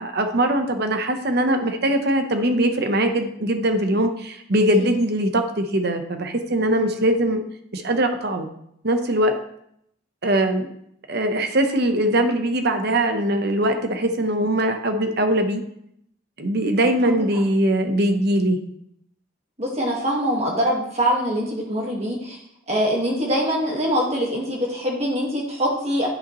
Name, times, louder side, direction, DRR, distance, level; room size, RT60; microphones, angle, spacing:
voice 1, 0.0-7.4 7.7-8.5 8.8-9.3 10.2-10.7 11.1-15.6 16.4-18.6, right 1 dB, 55° right, 6 dB, 0.9 m, -21 dB
voice 2, 19.6-22.4 22.7-26.1, equal, 35° right, -2 dB, 1.6 m, -23 dB
10.5 x 5.7 x 3.1 m, 0.72 s
head